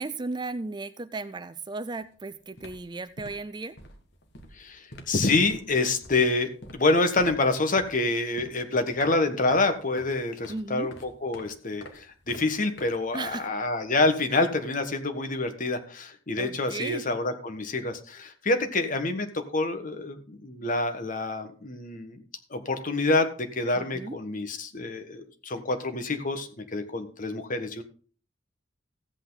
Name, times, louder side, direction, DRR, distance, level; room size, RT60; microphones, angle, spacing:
voice 1, 0.0-3.7 10.5-10.9 13.1-13.5 14.3-14.4 16.4-17.0 23.7-24.2, right 3 dB, 25° right, 13 dB, 0.5 m, -35 dB
sound 1, 2.0-2.2 2.4-13.9, left 1 dB, 60° left, 1.8 m, -48 dB
voice 2, 4.6-19.3 19.5-22.2 22.5-27.8, left 2 dB, 45° left, 7 dB, 1.5 m, -27 dB
14.5 x 8.3 x 4.0 m, 0.41 s
head